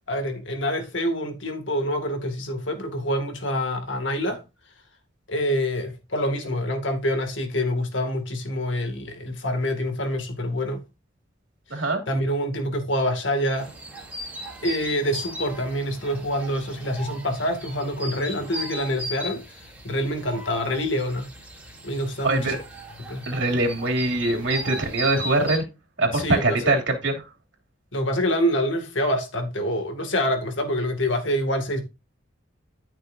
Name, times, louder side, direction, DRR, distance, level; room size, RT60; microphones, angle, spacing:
voice 1, 0.1-4.4 5.3-10.8 11.7-13.7 14.6-19.4 19.8-21.3 21.8-22.6 23.1-23.3 26.1-26.7 27.9-31.8, equal, 70° left, 2.2 m, -26 dB
voice 2, 11.7-12.0 22.2-22.6 23.3-25.6 26.0-27.2, right 2 dB, 65° right, 2.9 m, -23 dB
sound 1, 13.6-25.6, equal, 5° right, 3.2 m, -38 dB
13.5 x 6.1 x 2.6 m
head